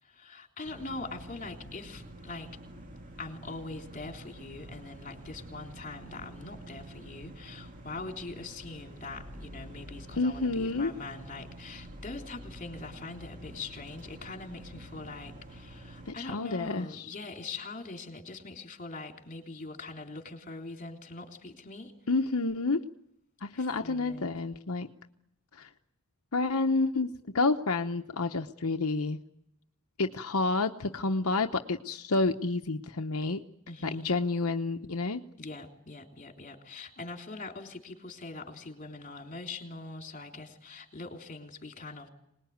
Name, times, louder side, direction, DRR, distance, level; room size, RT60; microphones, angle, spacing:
voice 1, 0.0-2.5 3.2-21.9 23.5-24.3 33.7-34.1 35.4-42.1, left 3 dB, 35° left, 3 dB, 3.4 m, -42 dB
sound 1, 0.6-16.1, right 1 dB, 35° right, 2.4 m, -47 dB
voice 2, 10.2-10.9 16.1-17.1 22.1-22.8 23.4-24.9 25.6-25.7 26.3-29.2 30.0-33.4 33.8-35.2, left 3 dB, 75° left, 5 dB, 0.9 m, -29 dB
26.0 x 20.0 x 9.4 m, 0.81 s
head